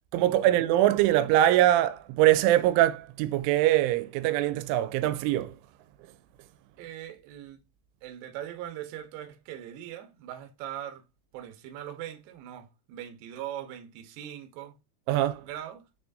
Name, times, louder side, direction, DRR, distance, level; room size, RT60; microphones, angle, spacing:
voice 1, 0.1-5.5 15.1-15.4, right 13 dB, 90° right, 3.1 m, -23 dB
voice 2, 6.8-7.6 8.0-11.0 11.3-14.7 15.4-15.9, right 11 dB, 75° right, 2.8 m, -40 dB
6.7 x 6.2 x 2.6 m
omnidirectional pair, 5.5 m